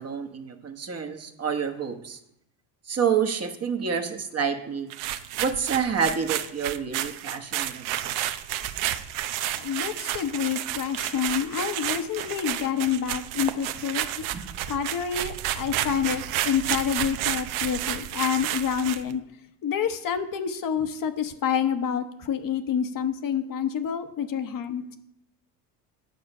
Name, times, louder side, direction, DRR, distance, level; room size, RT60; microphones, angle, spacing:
voice 1, 0.0-2.2 2.9-4.9 5.4-8.1 14.3-14.5, right 6 dB, 30° right, 5 dB, 1.2 m, -28 dB
sound 1, 4.9-19.1, right 12 dB, 65° right, 0.9 m, -31 dB
voice 2, 9.5-14.2 14.7-19.2 19.6-25.0, left 8 dB, 40° left, 8 dB, 1.0 m, -28 dB
9.4 x 6.7 x 5.4 m, 0.78 s
supercardioid pair, 90°, 49 cm